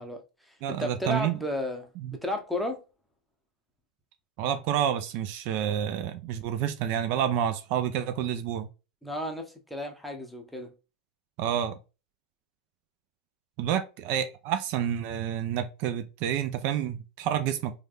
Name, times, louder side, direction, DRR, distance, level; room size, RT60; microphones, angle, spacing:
voice 1, 0.0-1.9 2.2-2.8 9.0-10.7, left 1 dB, ahead, 0.7 m, -33 dB
voice 2, 0.6-1.3 4.4-8.7 11.4-11.8 13.6-17.7, right 9 dB, 55° right, 0.4 m, -29 dB
3.2 x 2.3 x 2.4 m
hypercardioid pair, 105°, 4 cm